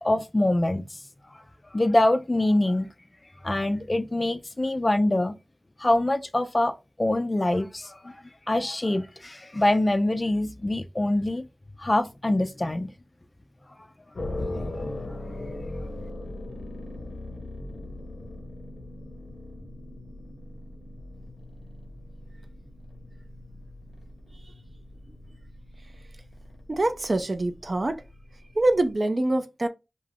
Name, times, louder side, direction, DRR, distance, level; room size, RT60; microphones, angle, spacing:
voice 1, 0.0-0.8 1.7-2.9 3.4-5.4 5.8-6.7 7.0-8.1 8.5-11.5 11.8-12.9 14.4-14.5, left 1 dB, 30° left, 0.3 m, -24 dB
sound 1, 14.1-28.9, left 1 dB, 70° left, 0.6 m, -40 dB
voice 2, 26.7-28.0 28.6-29.7, right 2 dB, 45° right, 0.4 m, -24 dB
2.3 x 2.2 x 3.3 m
wide cardioid pair, 75°, 0 cm